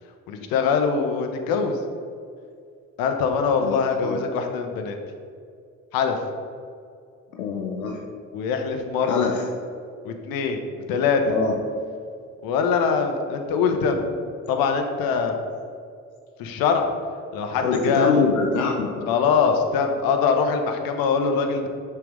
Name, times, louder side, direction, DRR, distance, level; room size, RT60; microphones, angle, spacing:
voice 1, 0.3-1.8 3.0-5.0 5.9-6.2 8.3-9.3 10.0-10.6 10.9-11.2 12.4-14.0 14.5-15.3 16.4-16.9 17.3-18.2 19.1-21.7, left 5 dB, 55° left, 5 dB, 0.9 m, -23 dB
voice 2, 3.6-4.2 7.3-8.0 9.0-9.4 11.2-11.5 13.7-13.9 17.6-19.2, left 5 dB, 80° left, 1 dB, 0.7 m, -25 dB
6.0 x 4.6 x 5.0 m, 2.3 s
figure-of-eight pair, 50°, 42 cm